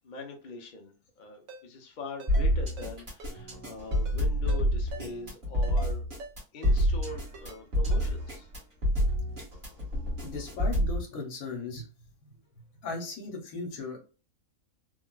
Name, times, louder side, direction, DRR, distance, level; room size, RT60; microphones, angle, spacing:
voice 1, 0.0-6.0 6.5-8.5, left 2 dB, 50° left, 3 dB, 0.6 m, -43 dB
Ringtone, 1.5-1.6 2.2-2.5 2.8-2.9 3.2-3.3 3.9-4.2 4.5-4.6 4.9-5.1 5.6-5.9 6.2-6.3 6.6-6.8 7.3-7.6 7.9-8.0, right 1 dB, 70° right, 1.2 m, -44 dB
sound 1, 2.3-11.0, equal, 35° right, 1.5 m, -27 dB
voice 2, 10.2-11.9 12.8-14.0, left 3 dB, 70° left, 1 dB, 1.3 m, -37 dB
3.5 x 2.3 x 2.2 m, 0.35 s
omnidirectional pair, 1.6 m